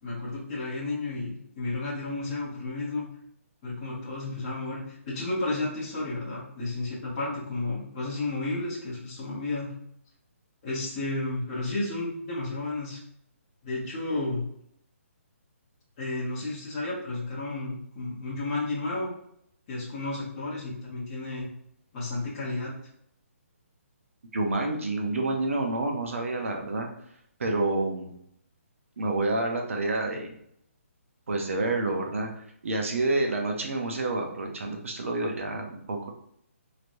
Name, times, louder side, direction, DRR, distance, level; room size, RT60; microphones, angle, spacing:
voice 1, 0.0-3.1 3.6-9.7 10.6-13.0 13.6-14.4 16.0-19.1 19.7-21.5 21.9-22.7 26.4-26.5, left 2 dB, 25° left, -8 dB, 1.0 m, -32 dB
voice 2, 24.3-26.9 27.4-28.1 29.0-30.3 31.3-32.3 32.6-36.1, right 2 dB, 65° right, 2 dB, 0.9 m, -28 dB
3.1 x 3.1 x 2.6 m, 0.71 s
hypercardioid pair, 170°, 8 cm